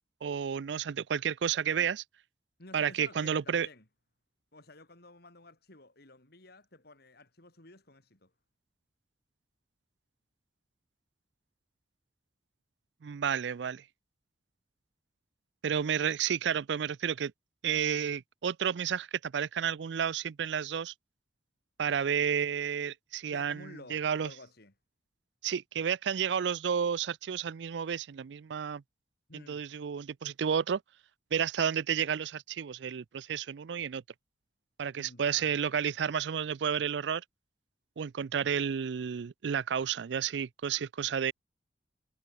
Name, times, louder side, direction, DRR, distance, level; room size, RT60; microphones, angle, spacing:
voice 1, 0.2-2.0 2.7-3.7 13.0-13.8 15.6-17.3 17.6-20.9 21.8-24.3 25.4-28.8 29.3-30.8 31.3-34.0 34.8-37.2 38.0-41.3, right 7 dB, 70° right, 0.4 m, -31 dB
voice 2, 2.6-3.9 4.5-8.3 23.2-24.7 29.3-29.6 34.9-35.9, left 2 dB, 60° left, 4.5 m, -53 dB
head